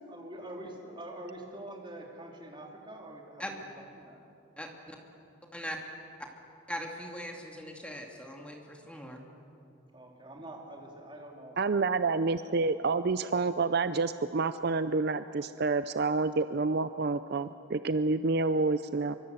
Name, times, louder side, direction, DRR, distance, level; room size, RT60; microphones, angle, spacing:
voice 1, 0.1-4.2 9.9-12.1 12.3-13.1, right 1 dB, 25° right, 0 dB, 3.3 m, -46 dB
voice 2, 4.6-5.0 5.5-5.8 6.7-9.2, equal, 5° left, 1 dB, 2.3 m, -40 dB
voice 3, 11.6-19.1, right 3 dB, 50° right, 12 dB, 0.5 m, -28 dB
24.5 x 23.5 x 8.0 m, 2.8 s
head